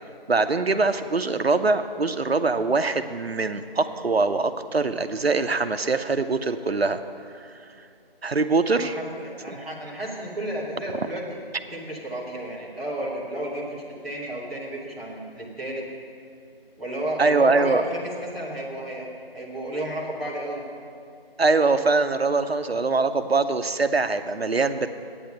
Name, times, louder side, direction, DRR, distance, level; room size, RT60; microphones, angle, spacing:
voice 1, 0.3-7.0 8.2-9.0 17.2-17.8 21.4-24.9, right 3 dB, 90° right, 9 dB, 0.7 m, -23 dB
voice 2, 8.8-11.4 11.7-15.9 16.8-19.1 19.3-20.6, right 1 dB, ahead, -11 dB, 0.6 m, -32 dB
8.9 x 8.6 x 6.7 m, 2.5 s
figure-of-eight pair, 165°, 30 cm